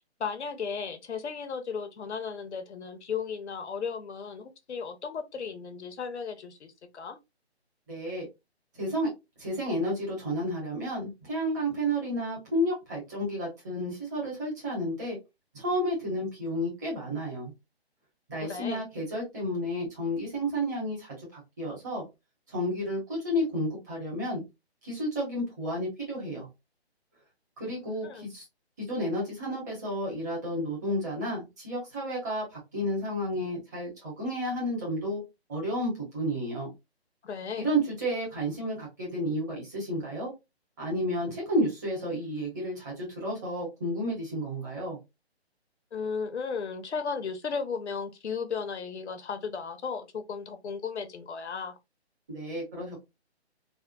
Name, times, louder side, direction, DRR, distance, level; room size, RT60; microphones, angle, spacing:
voice 1, 0.2-7.2 18.3-18.8 28.0-28.3 37.2-37.7 45.9-51.8, left 5 dB, 85° left, 0.7 m, -35 dB
voice 2, 7.9-8.3 8.7-9.1 9.4-15.2 15.5-17.5 18.3-22.0 22.5-24.4 24.8-26.5 27.6-28.4 28.8-35.2 35.5-36.7 37.6-40.3 40.8-45.0 52.3-53.1, equal, 15° right, 1.0 m, -31 dB
3.5 x 2.1 x 2.2 m
hypercardioid pair, 170°, 33 cm